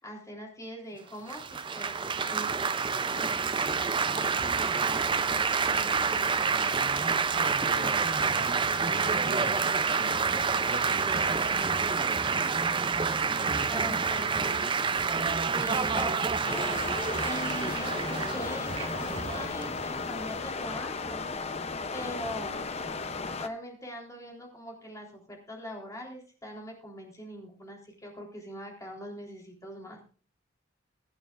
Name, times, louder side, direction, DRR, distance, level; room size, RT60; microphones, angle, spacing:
voice 1, 0.0-3.3 13.7-14.6 15.2-21.2 21.9-22.6 23.4-30.0, equal, 15° left, 0 dB, 3.7 m, -42 dB
Laughter / Applause / Chatter, 1.3-20.4, right 5 dB, 25° right, 0.5 m, -28 dB
voice 2, 4.1-6.9 7.4-12.5 13.0-14.8, right 1 dB, 40° right, 4 dB, 1.7 m, -42 dB
sound 1, 16.4-23.5, left 4 dB, 30° left, 0.7 m, -35 dB
23.0 x 9.0 x 2.5 m, 0.39 s
head